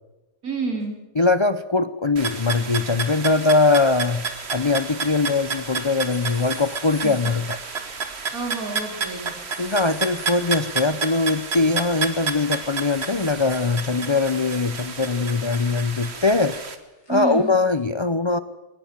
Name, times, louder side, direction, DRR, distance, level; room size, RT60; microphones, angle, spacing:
voice 1, 0.4-1.0 7.0-7.1 8.3-9.3 17.1-17.5, right 4 dB, 75° right, 3 dB, 4.1 m, -28 dB
sound 1, 0.8-0.9 2.6-2.9 3.2-5.6 6.0-17.8, left 2 dB, 75° left, 5.4 m, -51 dB
voice 2, 1.2-7.5 9.6-16.6 17.1-18.4, left 3 dB, 40° left, 12 dB, 0.4 m, -21 dB
sound 2, 2.2-16.8, right 5 dB, 45° right, 1.7 m, -31 dB
20.0 x 19.5 x 7.4 m, 1.1 s
omnidirectional pair, 1.5 m